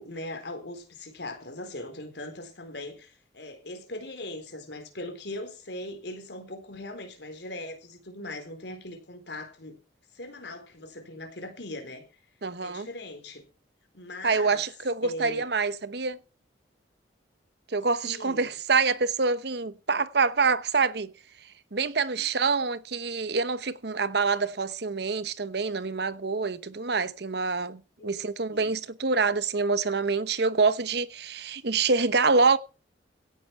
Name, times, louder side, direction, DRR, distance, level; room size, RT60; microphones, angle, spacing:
voice 1, 0.0-9.8 10.1-12.0 12.6-13.4 13.9-14.6 15.0-15.5 18.0-18.5 22.1-22.2 28.0-28.7, left 1 dB, 65° left, 4.0 m, -40 dB
voice 2, 12.4-12.9 14.2-16.2 17.7-21.1 21.7-32.6, right 4 dB, 60° right, 0.9 m, -26 dB
17.0 x 10.0 x 4.6 m
head